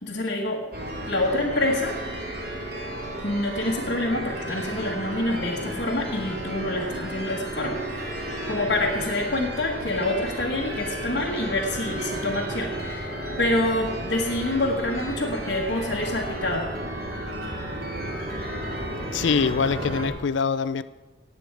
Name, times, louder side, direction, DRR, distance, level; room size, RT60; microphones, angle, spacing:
voice 1, 0.0-0.7 1.1-2.0 3.2-13.1 13.4-16.7, left 1 dB, 60° left, 1.4 m, -27 dB
sound 1, 0.7-20.1, right 1 dB, 55° right, 2.4 m, -33 dB
voice 2, 19.1-20.8, left 5 dB, 85° left, 0.5 m, -24 dB
18.0 x 8.7 x 4.7 m
head